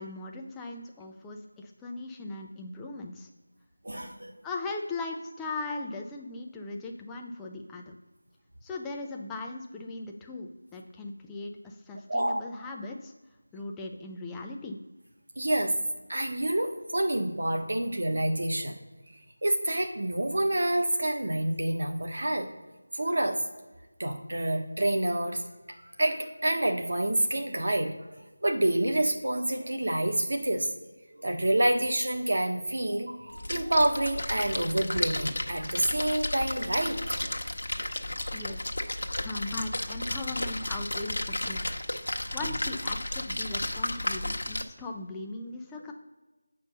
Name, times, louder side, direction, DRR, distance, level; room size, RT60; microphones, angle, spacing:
voice 1, 0.0-3.3 4.4-7.9 8.6-13.1 13.5-14.8 38.3-41.6 42.3-45.9, left 2 dB, 5° left, 1 dB, 0.3 m, -39 dB
voice 2, 3.8-4.3 12.1-12.4 15.4-15.7 16.1-18.8 19.4-22.5 22.9-23.4 24.0-25.4 25.7-27.9 28.4-30.7 31.1-37.0 37.2-37.3, right 1 dB, 50° right, 3 dB, 1.3 m, -28 dB
Splash splatter, 33.3-44.6, left 1 dB, 75° left, 1.1 m, -33 dB
8.4 x 5.2 x 5.4 m, 1.2 s
figure-of-eight pair, 180°, 0 cm